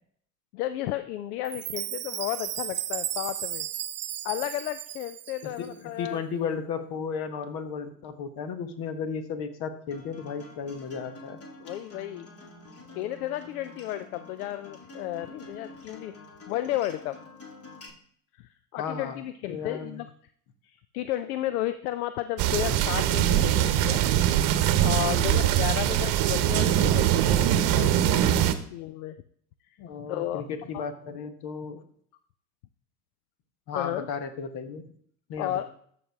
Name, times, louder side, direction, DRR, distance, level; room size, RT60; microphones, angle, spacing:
voice 1, 0.5-3.7 4.2-6.2 11.6-12.3 12.9-16.1 16.5-17.2 18.4-20.1 20.6-24.0 24.8-28.4 28.7-29.2 30.1-30.4 30.7-30.8 33.7-34.1 35.4-35.6, left 14 dB, 75° left, 12 dB, 0.6 m, -33 dB
Chime, 1.4-5.7, right 12 dB, 25° right, 0.4 m, -35 dB
voice 2, 5.4-11.4 18.8-20.0 25.1-25.6 29.8-31.8 33.7-34.9 35.3-35.7, left 6 dB, 55° left, 9 dB, 1.4 m, -34 dB
Acoustic guitar, 9.9-17.9, left 2 dB, 30° left, 2.1 m, -47 dB
sound 1, 22.4-28.5, right 11 dB, 55° right, 0.9 m, -22 dB
14.0 x 5.1 x 3.5 m, 0.63 s
hypercardioid pair, 70°, 45 cm